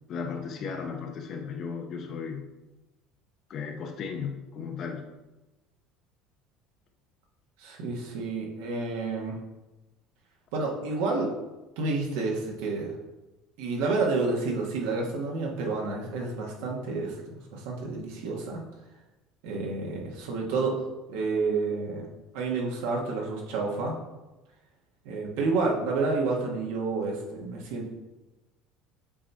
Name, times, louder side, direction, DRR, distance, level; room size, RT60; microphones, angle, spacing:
voice 1, 0.1-2.5 3.5-5.1, left 5 dB, 35° left, 3 dB, 0.7 m, -35 dB
voice 2, 7.6-9.4 10.5-11.3 11.8-12.9 13.6-18.6 19.4-20.8 21.1-22.1 22.3-24.0 25.0-27.9, right 3 dB, 85° right, -1 dB, 1.3 m, -29 dB
7.3 x 2.8 x 4.6 m, 1.1 s
cardioid pair, 180°, 0 cm